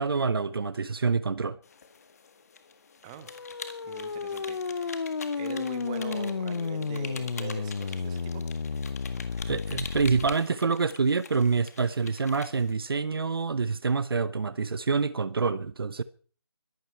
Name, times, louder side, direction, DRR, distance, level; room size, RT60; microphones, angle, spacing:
voice 1, 0.0-1.6 9.5-16.0, right 4 dB, 60° right, 0.8 m, -27 dB
sound 1, 1.6-12.7, left 5 dB, 35° left, 1.8 m, -45 dB
sound 2, 3.2-10.3, left 5 dB, 50° left, 0.8 m, -32 dB
voice 2, 3.8-8.4, right 8 dB, 15° right, 1.4 m, -42 dB
22.5 x 12.0 x 4.5 m
figure-of-eight pair, 165°, 14 cm